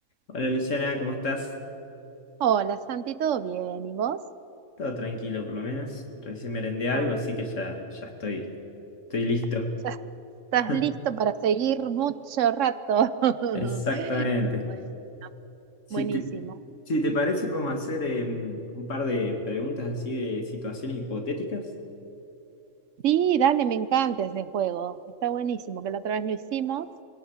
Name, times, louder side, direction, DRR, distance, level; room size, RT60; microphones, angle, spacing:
voice 1, 0.3-1.5 4.8-8.5 9.1-9.7 10.7-10.8 13.6-14.7 15.9-16.3 16.9-21.7, left 1 dB, 75° left, 4 dB, 2.4 m, -29 dB
voice 2, 2.4-4.2 6.9-7.0 9.8-9.9 10.5-13.8 15.9-16.4 23.0-25.0 25.2-26.9, right 9 dB, 75° right, 15 dB, 1.1 m, -26 dB
22.0 x 17.5 x 7.2 m, 2.9 s
omnidirectional pair, 1.3 m